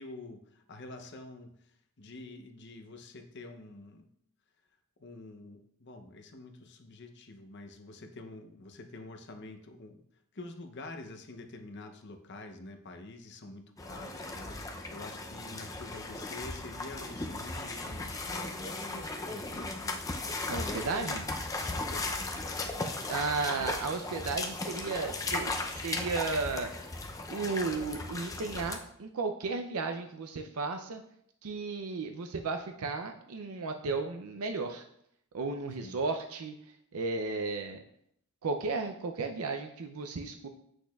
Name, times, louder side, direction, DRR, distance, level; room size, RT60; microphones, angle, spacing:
voice 1, 0.0-4.1 5.0-10.0 10.3-20.0 21.6-22.7 35.8-36.0, left 2 dB, 50° left, 6 dB, 0.7 m, -47 dB
sound 1, 13.8-28.8, left 2 dB, 15° left, 0.5 m, -37 dB
voice 2, 20.5-21.3 23.1-26.9 27.3-31.0 31.4-34.8 35.3-37.8 38.4-40.5, right 4 dB, 85° right, 6 dB, 0.5 m, -34 dB
8.3 x 6.2 x 2.3 m, 0.71 s
head